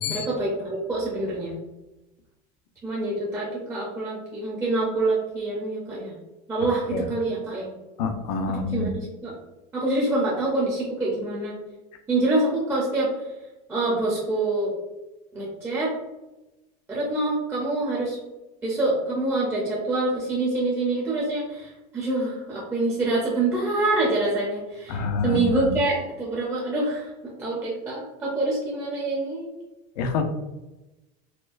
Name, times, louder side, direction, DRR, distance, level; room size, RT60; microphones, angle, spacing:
voice 1, 0.1-1.6 2.8-6.2 6.5-7.7 8.5-9.3 9.7-11.6 12.1-13.1 13.7-14.7 15.3-15.9 16.9-18.2 18.6-29.5, right 2 dB, 10° right, -5 dB, 0.6 m, -26 dB
voice 2, 8.0-8.9 24.9-25.7 30.0-30.2, left 4 dB, 80° left, 6 dB, 0.6 m, -27 dB
4.3 x 2.1 x 2.4 m, 1.0 s
supercardioid pair, 155°, 20 cm